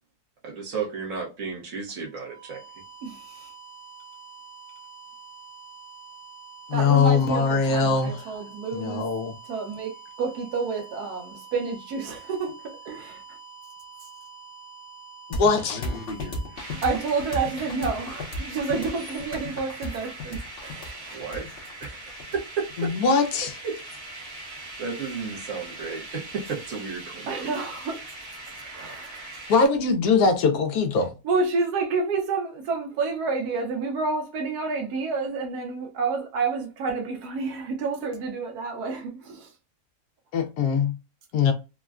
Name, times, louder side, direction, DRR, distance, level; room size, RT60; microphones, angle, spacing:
voice 1, 0.4-2.6 21.1-21.5 21.8-22.0 22.3-22.9 23.6-23.8 24.8-27.5, right 5 dB, 60° right, 1.1 m, -33 dB
sound 1, 2.0-17.8, right 5 dB, 20° left, 0.9 m, -46 dB
voice 2, 3.0-3.5 6.7-9.0 9.4-9.9 10.2-13.2 16.5-21.2 27.3-28.0 28.7-29.3 31.2-39.5, right 4 dB, 85° right, 1.3 m, -29 dB
voice 3, 6.7-8.3 8.7-9.3 15.4-15.8 22.8-23.5 29.5-31.1 40.3-41.0 41.3-41.5, left 5 dB, 75° left, 1.0 m, -21 dB
sound 2, 15.3-22.9, left 2 dB, 50° left, 0.8 m, -35 dB
sound 3, 16.6-29.7, right 2 dB, 40° right, 1.0 m, -41 dB
3.6 x 2.1 x 2.3 m
omnidirectional pair, 1.6 m